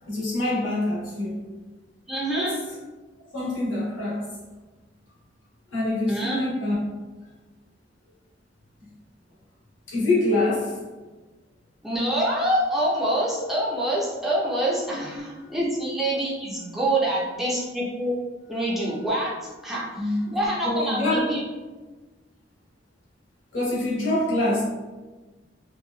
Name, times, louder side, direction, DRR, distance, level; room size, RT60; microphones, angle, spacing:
voice 1, 0.0-1.4 2.3-2.5 3.3-4.3 5.7-6.8 9.9-10.8 14.9-15.0 15.5-15.7 20.0-21.2 23.5-24.6, left 1 dB, 75° left, -7 dB, 1.2 m, -25 dB
voice 2, 2.1-2.6 6.1-6.4 11.8-18.1 18.5-19.3 19.6-21.4, right 1 dB, ahead, -6 dB, 0.5 m, -26 dB
3.0 x 2.3 x 2.3 m, 1.2 s
head